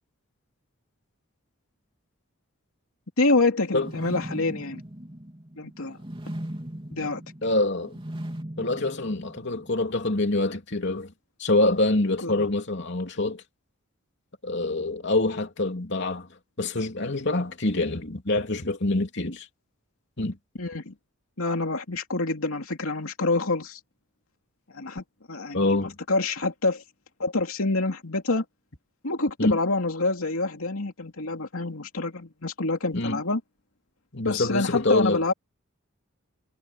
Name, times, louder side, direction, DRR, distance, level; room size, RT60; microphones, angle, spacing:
voice 1, 3.2-4.8 5.6-6.0 6.9-7.2 12.2-12.5 20.6-20.9 21.4-23.8 24.7-25.8 26.1-26.8 27.2-28.4 29.0-33.4 34.2-35.3, left 3 dB, 80° left, 2.8 m, -27 dB
sound 1, 3.7-9.8, right 1 dB, 25° right, 3.5 m, -39 dB
voice 2, 7.4-7.9 8.6-11.1 11.4-13.4 14.4-19.5 20.2-20.4 25.5-26.0 29.4-29.6 32.9-33.2 34.1-35.3, left 2 dB, 55° left, 3.1 m, -25 dB
head